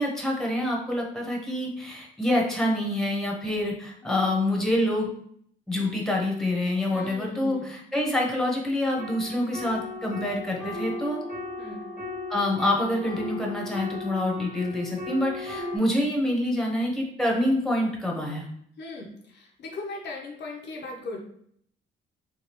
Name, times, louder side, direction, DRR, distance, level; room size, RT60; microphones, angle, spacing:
voice 1, 0.0-5.1 5.7-11.2 12.3-18.5, left 1 dB, ahead, -1 dB, 0.9 m, -26 dB
voice 2, 6.9-7.8 11.6-11.9 18.8-21.2, left 2 dB, 60° left, 0 dB, 0.7 m, -38 dB
sound 1, 9.0-15.8, left 2 dB, 35° right, 1.3 m, -36 dB
3.4 x 2.3 x 2.9 m, 0.66 s
cardioid pair, 90°, 20 cm